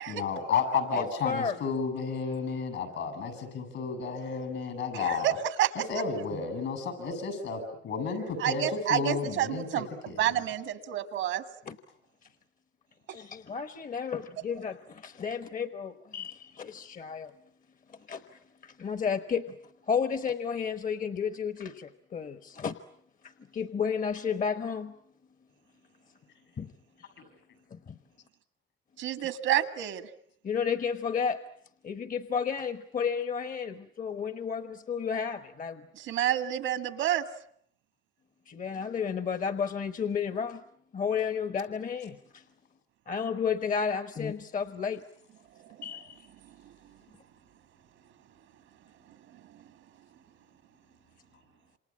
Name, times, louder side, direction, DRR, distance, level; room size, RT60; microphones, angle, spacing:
voice 1, 0.1-5.4 5.7-10.2 27.2-27.3, left 5 dB, 75° left, 10 dB, 7.7 m, -32 dB
voice 2, 0.9-1.6 6.3-6.4 11.7-11.8 13.1-17.3 18.1-19.5 19.9-22.8 23.2-24.9 26.6-26.7 27.0-27.1 27.7-28.0 30.4-31.4 31.8-35.8 38.5-40.6 40.9-42.4 43.1-45.0 45.8-46.3, left 6 dB, 45° left, 11 dB, 1.1 m, -32 dB
voice 3, 4.9-5.7 8.4-9.9 10.2-11.4 29.0-30.0 35.9-37.3 45.6-45.8 46.6-46.7 49.3-49.6, right 12 dB, 85° right, 11 dB, 1.8 m, -29 dB
28.0 x 26.5 x 7.4 m, 0.65 s
cardioid pair, 90°, 20 cm